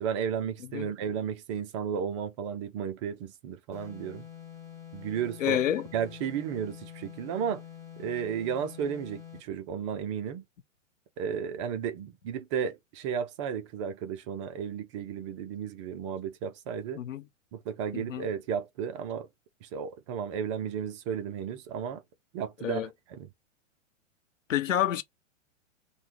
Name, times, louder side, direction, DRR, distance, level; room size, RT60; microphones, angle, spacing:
voice 1, 0.0-4.3 4.9-5.6 5.9-7.6 8.0-10.4 11.2-17.0 17.5-19.3 19.6-22.0 22.3-22.8 23.1-23.3, right 7 dB, 25° right, 0.4 m, -33 dB
sound 1, 3.7-9.5, left 10 dB, 5° left, 2.0 m, -46 dB
voice 2, 5.4-5.8 17.0-17.2 17.9-18.3 22.6-22.9 24.5-25.0, left 11 dB, 75° left, 0.8 m, -28 dB
5.7 x 2.2 x 3.1 m
hypercardioid pair, 115°, 39 cm